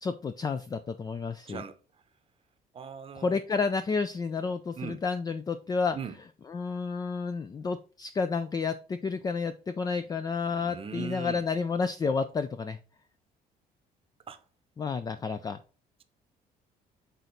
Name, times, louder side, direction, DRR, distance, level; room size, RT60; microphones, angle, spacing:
voice 1, 0.0-1.6 3.2-6.0 6.5-12.8 14.8-15.6, left 4 dB, 25° left, 0.4 m, -30 dB
voice 2, 2.7-3.4 4.8-5.0 5.9-6.2 10.1-10.2 10.5-11.4 14.3-14.4, right 7 dB, 35° right, 0.8 m, -39 dB
6.1 x 4.0 x 3.9 m
cardioid pair, 110°, 17 cm